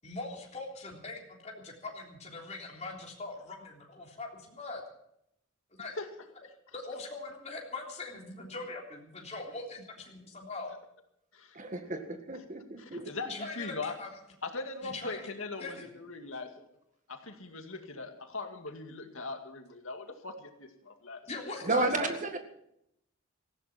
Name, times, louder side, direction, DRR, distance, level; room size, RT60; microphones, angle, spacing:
voice 1, 0.0-4.8 5.8-5.9 6.7-10.7 12.8-14.1 14.8-15.3 15.6-15.9 21.3-22.2, left 3 dB, 30° left, -1 dB, 3.4 m, -42 dB
voice 2, 11.5-13.1 21.6-22.4, right 2 dB, 35° right, 6 dB, 1.9 m, -32 dB
voice 3, 12.8-13.9 14.4-16.6 17.1-21.5, left 3 dB, 70° left, 5 dB, 2.3 m, -40 dB
18.0 x 15.5 x 4.4 m, 0.75 s
head